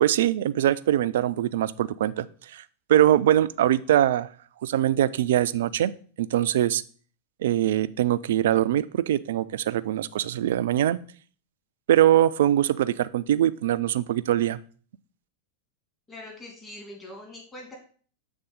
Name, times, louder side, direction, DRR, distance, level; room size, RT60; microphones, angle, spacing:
voice 1, 0.0-2.6 2.9-4.3 4.6-5.9 6.2-6.8 7.4-11.0 11.9-14.6, right 12 dB, 60° right, 16 dB, 0.3 m, -22 dB
voice 2, 16.1-17.8, left 1 dB, 15° left, -1 dB, 2.4 m, -42 dB
7.0 x 3.5 x 5.1 m, 0.44 s
figure-of-eight pair, 90°, 0 cm